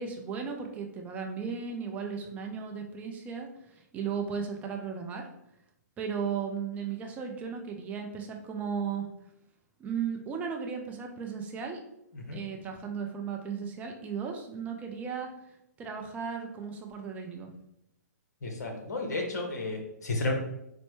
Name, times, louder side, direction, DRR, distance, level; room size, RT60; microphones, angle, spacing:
voice 1, 0.0-3.5 3.8-5.2 6.0-9.1 9.8-11.8 12.3-15.3 15.8-17.5, right 6 dB, 15° right, 2 dB, 0.4 m, -35 dB
voice 2, 18.4-20.3, left 2 dB, 70° left, 2 dB, 0.9 m, -32 dB
4.2 x 2.1 x 3.0 m, 0.82 s
hypercardioid pair, 130°, 10 cm